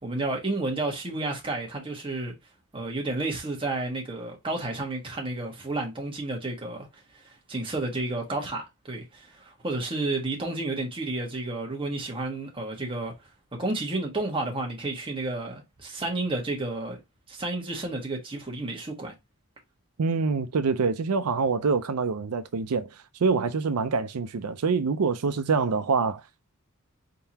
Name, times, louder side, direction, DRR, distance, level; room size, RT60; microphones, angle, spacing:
voice 1, 0.0-2.3 2.7-7.2 7.5-13.1 13.6-17.0 17.3-19.1, right 2 dB, 25° right, 1.3 m, -31 dB
voice 2, 20.0-26.2, right 4 dB, 90° right, 0.5 m, -25 dB
4.5 x 3.8 x 2.8 m
head